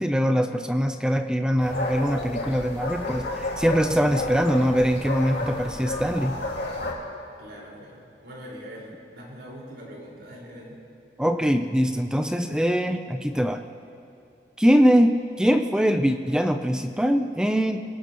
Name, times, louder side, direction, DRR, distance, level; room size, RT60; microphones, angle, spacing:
voice 1, 0.0-6.4 11.2-13.6 14.6-17.8, equal, 5° right, 6 dB, 0.5 m, -22 dB
sound 1, 1.6-6.9, left 2 dB, 70° left, 2.2 m, -31 dB
voice 2, 7.4-10.8, equal, 85° right, -4 dB, 4.9 m, -42 dB
26.5 x 17.0 x 3.0 m, 2.5 s
head